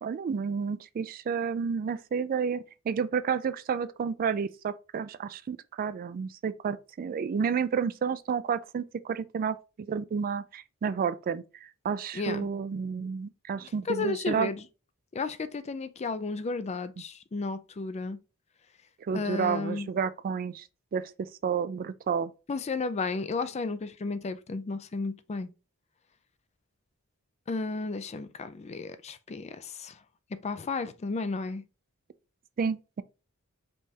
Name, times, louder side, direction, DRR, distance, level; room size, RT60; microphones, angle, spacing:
voice 1, 0.0-9.6 9.9-14.5 19.0-22.3 32.6-33.0, right 6 dB, 40° right, 0.3 m, -31 dB
voice 2, 12.1-12.5 13.9-14.6 15.1-18.2 19.1-19.9 22.5-25.5 27.5-30.0 30.3-31.6, left 3 dB, 30° left, 0.4 m, -33 dB
5.2 x 3.3 x 2.8 m
head